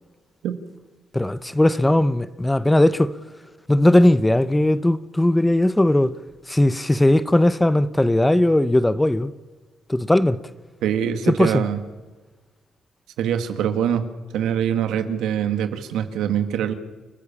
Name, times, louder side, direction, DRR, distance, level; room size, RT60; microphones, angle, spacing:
voice 1, 1.1-3.1 3.7-6.2 6.5-9.3 9.9-10.4 11.4-11.6, left 1 dB, 10° left, 0.8 m, -18 dB
voice 2, 10.8-11.8 13.2-14.1 14.3-16.7, right 9 dB, 85° right, 1.9 m, -23 dB
29.5 x 14.0 x 7.3 m
cardioid pair, 90°, 0 cm